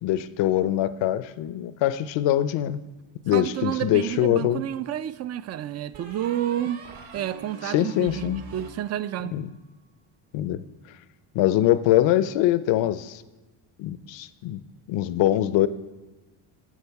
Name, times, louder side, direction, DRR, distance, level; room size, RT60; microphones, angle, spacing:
voice 1, 0.0-2.8 3.2-4.6 7.6-8.4 9.3-9.5 10.3-10.6 11.3-13.2 13.8-14.6 14.9-15.7, left 13 dB, 60° left, 0.7 m, -23 dB
voice 2, 3.3-6.8 7.1-9.4, right 11 dB, 35° right, 0.4 m, -30 dB
sound 1, 4.1-5.0 5.9-9.4, right 4 dB, 80° right, 2.6 m, -44 dB
15.5 x 6.4 x 4.6 m
cardioid pair, 100°, 50 cm